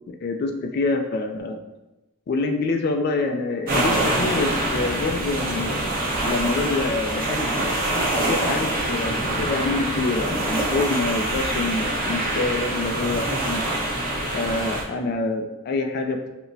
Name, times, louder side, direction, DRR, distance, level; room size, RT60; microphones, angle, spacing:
voice 1, 0.2-1.6 2.3-5.7 6.2-7.5 8.3-13.6 14.3-16.3, left 3 dB, 45° left, 4 dB, 0.3 m, -26 dB
sound 1, 3.7-14.8, right 1 dB, 45° right, 1.0 m, -25 dB
sound 2, 4.5-10.6, right 1 dB, 10° right, 0.6 m, -37 dB
5.9 x 2.1 x 2.6 m, 1.0 s
head